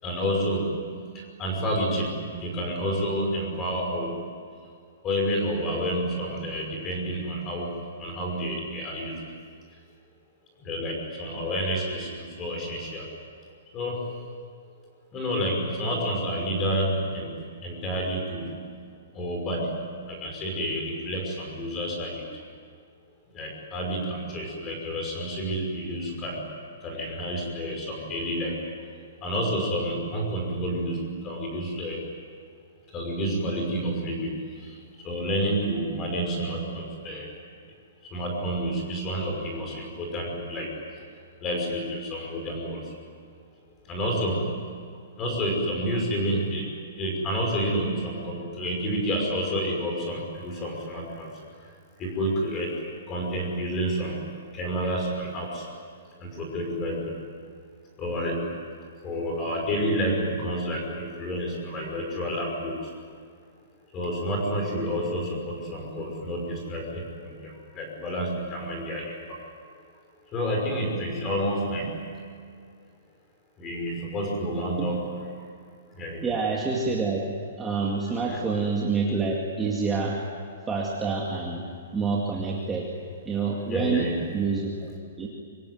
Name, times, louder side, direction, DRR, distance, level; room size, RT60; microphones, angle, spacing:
voice 1, 0.0-4.2 5.0-9.3 10.6-13.1 13.7-14.2 15.1-18.7 19.1-22.3 23.3-26.6 26.8-28.7 29.2-32.1 32.9-37.3 38.1-40.8 41.4-43.0 43.9-44.8 45.2-55.7 56.2-57.3 58.0-58.7 59.0-62.9 63.9-69.4 70.3-72.2 73.6-75.5 75.9-76.3 78.3-78.4 83.7-84.5, equal, 15° left, 1 dB, 5.5 m, -30 dB
voice 2, 76.2-77.2 77.6-80.2 80.7-81.6 81.9-82.9 83.3-84.1 84.3-84.7 85.2-85.3, right 4 dB, 10° right, -3 dB, 2.2 m, -27 dB
25.5 x 24.5 x 9.5 m, 2.2 s
hypercardioid pair, 175°, 0 cm